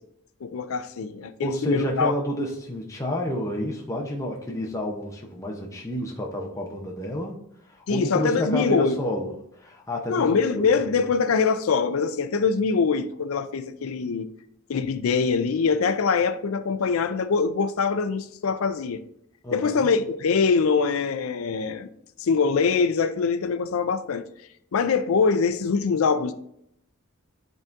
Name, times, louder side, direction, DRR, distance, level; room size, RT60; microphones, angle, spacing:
voice 1, 0.4-2.1 7.9-9.0 10.1-14.3 14.7-19.0 19.5-21.9 22.2-24.3 24.7-26.3, left 5 dB, 80° left, 0.4 m, -23 dB
voice 2, 1.4-7.4 7.6-10.9 19.4-19.9, equal, 15° left, 0.7 m, -30 dB
11.0 x 3.6 x 2.6 m
head